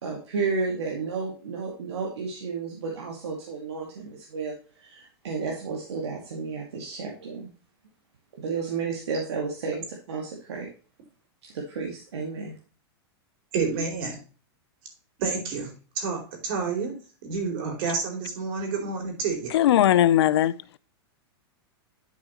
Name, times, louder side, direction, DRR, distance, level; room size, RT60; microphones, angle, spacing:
voice 1, 0.0-7.5 8.3-10.7 11.5-12.6, right 4 dB, 90° right, 2.4 m, -32 dB
voice 2, 13.5-14.2 15.2-15.7 16.0-16.9 17.2-19.5, right 5 dB, 60° right, 4.0 m, -29 dB
voice 3, 19.5-20.5, left 12 dB, 75° left, 0.6 m, -19 dB
11.5 x 5.0 x 3.0 m
hypercardioid pair, 130°, 14 cm